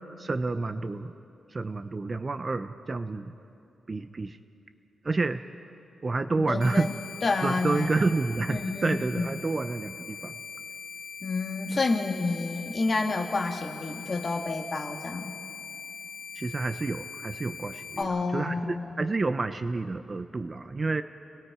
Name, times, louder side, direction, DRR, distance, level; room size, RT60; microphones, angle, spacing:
voice 1, 0.2-1.1 1.5-3.3 3.9-4.4 5.0-5.4 6.0-6.9 7.4-10.3 16.4-18.6 19.0-21.0, right 3 dB, 25° right, 10 dB, 0.4 m, -29 dB
voice 2, 6.4-6.9 7.2-7.9 8.5-9.5 11.2-15.3 18.0-19.0, left 3 dB, 30° left, 3 dB, 1.5 m, -29 dB
sound 1, 6.6-18.0, left 6 dB, 80° left, 1.4 m, -42 dB
30.0 x 20.0 x 4.8 m, 2.8 s
wide cardioid pair, 170°, 0 cm